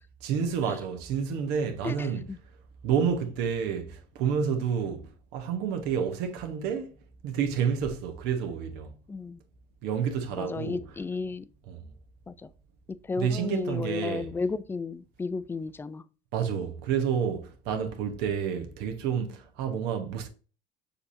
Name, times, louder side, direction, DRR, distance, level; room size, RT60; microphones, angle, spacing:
voice 1, 0.2-2.3 2.8-6.9 7.2-8.9 9.8-11.0 11.7-11.9 13.2-14.3 16.3-20.3, right 7 dB, 80° right, 0.9 m, -29 dB
voice 2, 1.8-2.4 9.1-9.4 10.4-11.4 12.3-12.4 13.1-16.0, left 4 dB, 15° left, 0.3 m, -33 dB
6.6 x 2.8 x 2.6 m
cardioid pair, 115°, 17 cm